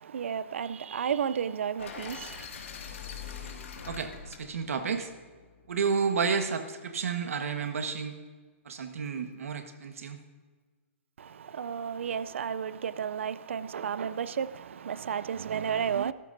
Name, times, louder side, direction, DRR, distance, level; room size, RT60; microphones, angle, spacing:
voice 1, 0.0-2.5 11.2-16.1, right 7 dB, 60° right, 0.4 m, -32 dB
sound 1, 1.8-5.8, left 6 dB, 65° left, 2.1 m, -43 dB
voice 2, 3.8-5.1 5.7-8.2 8.6-10.2, right 5 dB, 90° right, 1.4 m, -31 dB
16.5 x 13.5 x 2.7 m
hypercardioid pair, 180°, 7 cm